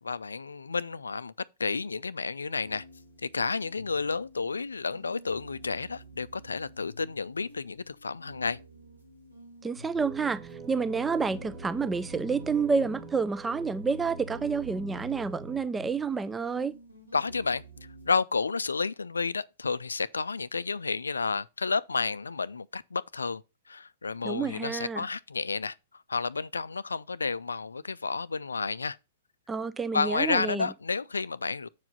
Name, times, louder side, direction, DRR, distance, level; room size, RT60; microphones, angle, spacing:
voice 1, 0.0-1.3 1.6-2.8 3.2-8.6 17.1-17.6 18.1-23.4 23.7-25.7 26.1-29.0 29.9-31.7, left 4 dB, 70° left, 0.4 m, -31 dB
sound 1, 2.6-18.1, left 1 dB, 85° right, 2.0 m, -51 dB
voice 2, 9.6-16.7 24.2-25.1 29.5-30.7, right 5 dB, 10° right, 0.3 m, -29 dB
sound 2, 9.9-15.6, right 3 dB, 30° right, 1.7 m, -43 dB
7.4 x 4.8 x 5.3 m
figure-of-eight pair, 105°, 0 cm